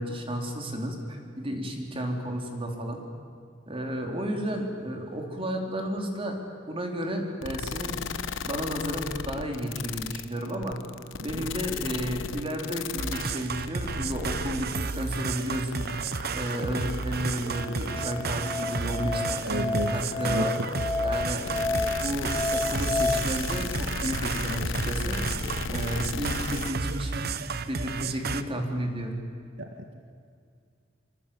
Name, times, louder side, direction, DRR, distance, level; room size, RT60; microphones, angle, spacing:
voice 1, 0.0-3.0 3.7-6.4 6.7-8.0 8.4-10.8 11.2-15.9 16.3-20.6 21.0-25.2 25.7-27.3 27.7-29.1, equal, 30° right, 2 dB, 4.1 m, -32 dB
sound 1, 7.4-26.7, left 5 dB, 80° left, 1.0 m, -35 dB
sound 2, 13.0-28.4, right 4 dB, 55° right, 1.0 m, -32 dB
Musical instrument, 17.5-23.2, left 3 dB, 25° left, 2.1 m, -30 dB
voice 2, 19.4-19.9 20.2-20.5 29.6-29.7, right 1 dB, 75° right, 3 dB, 2.0 m, -30 dB
26.5 x 25.5 x 8.8 m, 2.2 s
head